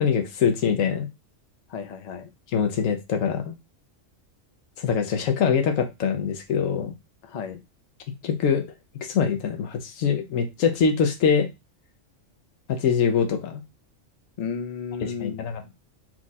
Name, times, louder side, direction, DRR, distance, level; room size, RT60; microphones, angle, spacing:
voice 1, 0.0-1.1 2.5-3.5 4.8-6.9 8.2-8.7 9.0-11.5 12.7-13.6 15.0-15.7, left 6 dB, 80° left, 6 dB, 1.2 m, -23 dB
voice 2, 1.7-2.3 7.2-7.6 14.4-15.5, left 6 dB, 45° left, 7 dB, 0.6 m, -33 dB
4.5 x 2.4 x 3.9 m, 0.24 s
omnidirectional pair, 1.3 m